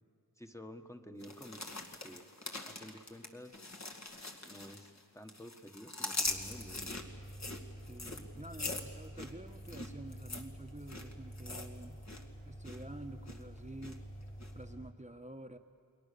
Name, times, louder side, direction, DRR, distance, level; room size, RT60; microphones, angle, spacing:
voice 1, 0.4-1.7 2.0-2.2 2.7-3.6 4.4-7.0 8.0-8.4, equal, 10° left, 5 dB, 1.5 m, -51 dB
sound 1, 1.2-5.0 5.3-12.2 12.5-12.8 13.3-13.9 14.4-14.5, left 2 dB, 50° left, 2.2 m, -42 dB
sound 2, 6.2-14.9, equal, 35° left, 2.6 m, -49 dB
voice 2, 7.9-12.0 12.4-14.0 14.5-15.6, right 1 dB, 20° right, 6 dB, 1.2 m, -49 dB
29.5 x 22.0 x 6.9 m, 2.2 s
wide cardioid pair, 65°, 35 cm